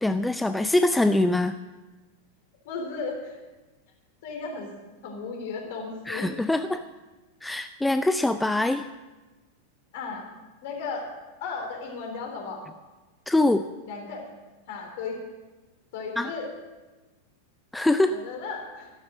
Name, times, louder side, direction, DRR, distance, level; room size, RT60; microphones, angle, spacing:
voice 1, 0.0-1.6 6.1-6.8 7.4-8.9 13.3-13.7 16.2-16.3 17.7-18.2, left 2 dB, 5° left, 10 dB, 0.4 m, -23 dB
voice 2, 2.7-3.4 4.2-4.7 5.0-6.3 9.9-10.3 10.6-11.1 11.4-12.6 13.8-14.3 14.7-15.2 15.9-16.5 18.1-18.9, left 4 dB, 50° left, 2 dB, 3.5 m, -35 dB
13.5 x 12.0 x 6.2 m, 1.2 s
figure-of-eight pair, 90°, 0 cm